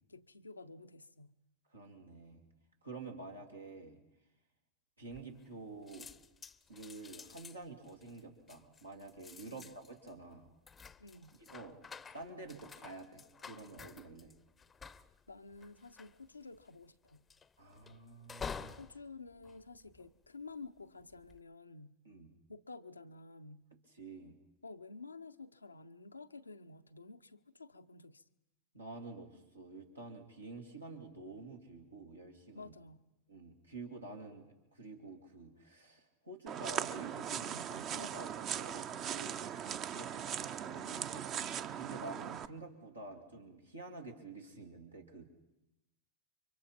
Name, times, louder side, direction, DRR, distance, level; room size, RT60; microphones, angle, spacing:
voice 1, 0.1-1.3 9.4-9.7 11.0-11.4 15.3-17.3 18.8-22.0 22.5-23.7 24.6-28.2 32.5-33.1 39.1-40.2, left 3 dB, 85° left, 0.7 m, -51 dB
voice 2, 1.7-2.5 2.8-4.0 5.0-6.1 6.7-10.5 11.4-11.8 12.1-14.3 17.6-18.8 22.0-22.3 24.0-24.3 28.7-32.7 33.3-39.4 39.9-45.3, right 3 dB, 90° right, 2.5 m, -49 dB
sound 1, 5.1-5.6 5.9-20.4 21.0-21.4, left 6 dB, 20° left, 0.7 m, -51 dB
sound 2, 36.5-42.5, right 9 dB, 35° right, 0.7 m, -39 dB
30.0 x 24.0 x 4.3 m
figure-of-eight pair, 90°, 0 cm